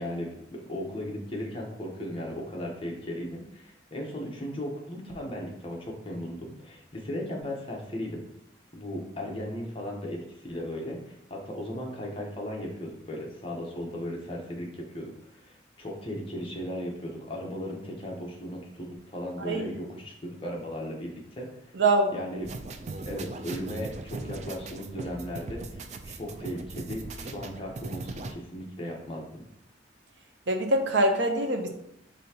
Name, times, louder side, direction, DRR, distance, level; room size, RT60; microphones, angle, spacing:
voice 1, 0.0-8.2 8.7-15.1 15.4-20.1 20.4-21.7 22.1-22.5 23.0-29.4, equal, 30° left, -1 dB, 0.9 m, -36 dB
voice 2, 21.7-22.1 30.5-31.7, right 2 dB, 70° right, 4 dB, 0.7 m, -24 dB
sound 1, 22.4-28.3, right 3 dB, 35° right, 0.3 m, -39 dB
5.4 x 3.3 x 2.8 m, 0.75 s
head